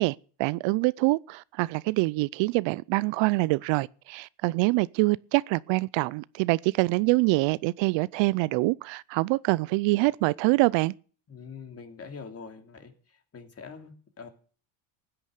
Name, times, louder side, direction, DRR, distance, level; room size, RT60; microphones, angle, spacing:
voice 1, 0.0-10.9, right 23 dB, 60° right, 0.6 m, -25 dB
voice 2, 11.3-12.9 13.3-14.3, left 5 dB, 30° left, 3.0 m, -43 dB
16.0 x 10.0 x 6.6 m
supercardioid pair, 110°, 49 cm